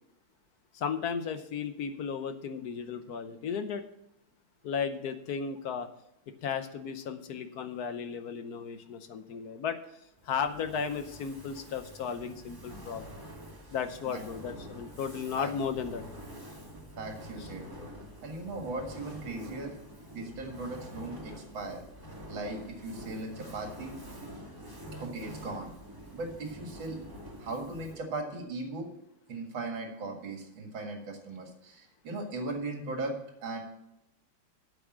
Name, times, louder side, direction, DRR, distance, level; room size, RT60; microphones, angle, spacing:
voice 1, 0.7-3.8 4.6-5.9 6.4-9.8 10.2-13.0 13.7-16.0 17.4-17.5, left 6 dB, 60° left, 9 dB, 1.0 m, -35 dB
Fire, 10.2-28.1, equal, 10° right, 1.7 m, -46 dB
voice 2, 17.0-17.9 18.2-19.7 20.1-21.8 22.3-23.9 25.0-25.7 26.1-27.0 27.4-28.9 29.3-33.1 33.4-33.6, right 2 dB, 65° right, 2 dB, 2.7 m, -38 dB
8.6 x 7.1 x 7.3 m, 0.84 s
omnidirectional pair, 2.3 m